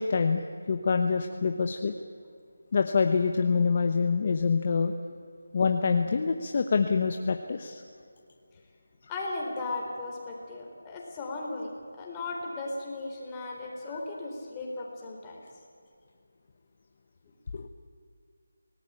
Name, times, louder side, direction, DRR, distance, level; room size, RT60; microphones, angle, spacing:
voice 1, 0.0-1.9 2.7-4.9 5.5-7.8 13.9-14.0 17.5-17.7, left 5 dB, 35° left, 6 dB, 1.1 m, -26 dB
voice 2, 9.1-11.7 12.0-15.4, left 2 dB, 15° left, -1 dB, 3.8 m, -36 dB
26.0 x 18.5 x 8.7 m, 2.4 s
figure-of-eight pair, 170°, 0 cm